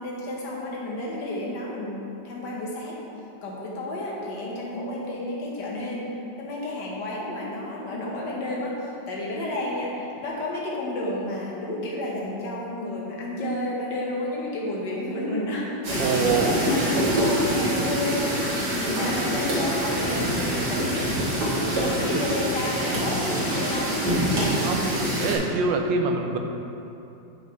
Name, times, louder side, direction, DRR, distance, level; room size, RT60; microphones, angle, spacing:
voice 1, 0.0-3.0 3.4-15.8 16.4-16.8 17.2-18.3 18.7-21.0 21.6-23.9, left 1 dB, 65° left, -4 dB, 1.8 m, -31 dB
sound 1, 15.8-25.4, equal, 60° right, 2.1 m, -25 dB
voice 2, 16.0-16.5 21.8-22.0 24.5-24.9 25.2-26.4, right 4 dB, 80° right, 3 dB, 1.3 m, -25 dB
9.5 x 5.4 x 3.2 m, 2.8 s
omnidirectional pair, 2.0 m